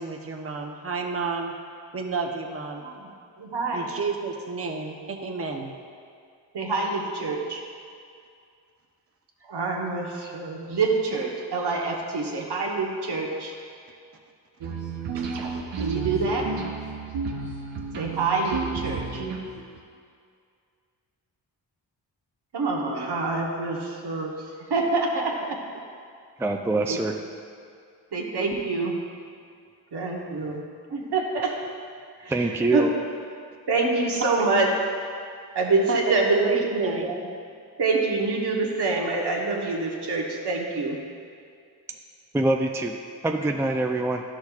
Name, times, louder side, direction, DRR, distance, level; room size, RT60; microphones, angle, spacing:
voice 1, 0.0-1.5 1.9-2.9 3.7-5.8 34.4-34.5 35.9-37.1, right 4 dB, 30° right, 2 dB, 0.8 m, -31 dB
voice 2, 3.4-3.9 6.5-7.6 9.5-13.5 15.8-16.5 18.0-19.2 22.5-24.3 24.7-25.6 26.9-27.0 28.1-29.0 29.9-30.6 30.9-31.6 32.2-32.4 32.7-32.8 33.7-34.7 35.5-37.3 37.8-41.0, right 3 dB, 65° right, -1 dB, 1.2 m, -26 dB
sound 1, 14.6-19.8, right 5 dB, 85° right, 0.8 m, -32 dB
voice 3, 26.4-27.1 32.3-32.9 42.3-42.9 43.2-44.2, right 2 dB, 5° right, 3 dB, 0.4 m, -24 dB
11.5 x 6.3 x 2.4 m, 2.3 s
cardioid pair, 60°, 43 cm